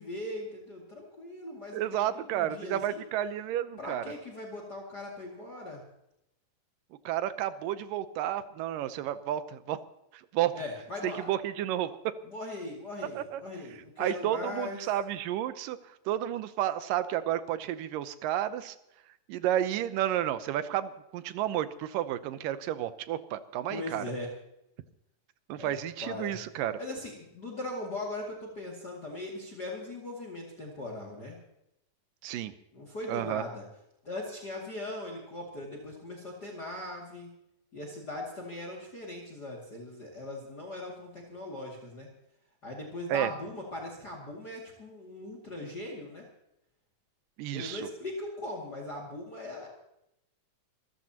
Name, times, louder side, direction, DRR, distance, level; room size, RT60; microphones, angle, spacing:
voice 1, 0.0-3.0 3.8-5.8 10.5-11.3 12.3-14.8 23.7-24.3 25.6-25.7 26.0-26.4 26.8-31.4 32.7-33.6 34.0-37.3 37.7-42.1 42.6-46.2 47.5-49.7, left 2 dB, 30° left, 0 dB, 2.5 m, -39 dB
voice 2, 1.7-4.0 7.1-9.8 10.1-10.5 11.0-12.1 13.2-13.4 14.0-15.8 16.1-18.8 19.3-24.0 25.5-26.8 32.2-32.5 33.1-33.4 43.1-43.3 47.4-47.8, right 12 dB, 80° right, 12 dB, 2.4 m, -31 dB
26.0 x 14.0 x 2.9 m, 0.82 s
omnidirectional pair, 4.0 m